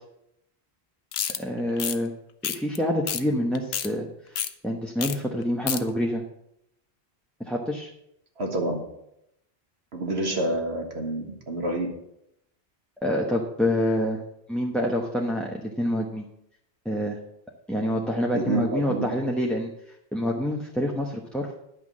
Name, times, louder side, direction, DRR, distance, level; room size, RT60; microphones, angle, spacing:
sound 1, 1.1-1.4 1.8-2.0 2.4-2.8 3.1-3.2 3.5-3.9 4.4-4.5 5.0-5.2 5.4-5.8, left 9 dB, 75° left, 0.9 m, -28 dB
voice 1, 1.4-2.1 2.4-6.2 7.4-7.9 13.0-14.2 14.5-16.2 16.8-17.2 17.7-19.7 20.1-21.5, equal, ahead, -1 dB, 0.9 m, -27 dB
voice 2, 8.4-8.8 9.9-11.9 18.3-19.1, right 1 dB, 75° right, 2 dB, 1.8 m, -28 dB
10.0 x 5.9 x 7.4 m, 0.79 s
omnidirectional pair, 1.1 m